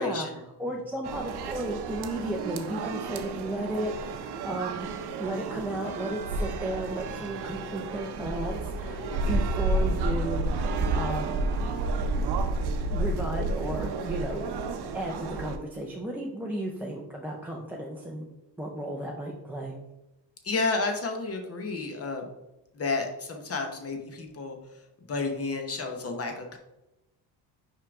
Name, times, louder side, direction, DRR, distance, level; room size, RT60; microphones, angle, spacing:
voice 1, 0.0-0.4 0.7-0.8 9.1-9.4 20.4-22.3 22.7-24.6 25.1-26.6, left 3 dB, 35° left, 4 dB, 0.9 m, -31 dB
voice 2, 0.6-4.9 5.2-11.5 12.9-14.6 14.9-18.3 18.6-19.7, right 1 dB, 5° right, -2 dB, 0.5 m, -34 dB
sound 1, 1.0-15.6, right 3 dB, 65° right, 0.8 m, -31 dB
5.5 x 4.9 x 3.5 m, 0.96 s
cardioid pair, 155°, 42 cm